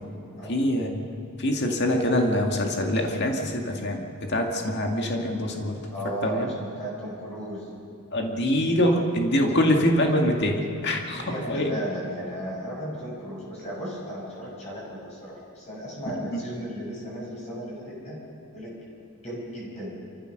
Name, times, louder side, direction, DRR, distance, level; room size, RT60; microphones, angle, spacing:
voice 1, 0.5-1.0 1.4-5.8 6.2-6.5 8.1-11.8 16.3-16.4, left 1 dB, 50° left, 2 dB, 2.1 m, -24 dB
voice 2, 5.9-7.7 11.1-18.2 18.5-18.7 19.1-20.0, right 1 dB, 30° left, -5 dB, 6.9 m, -35 dB
28.5 x 14.5 x 6.6 m, 2.6 s
head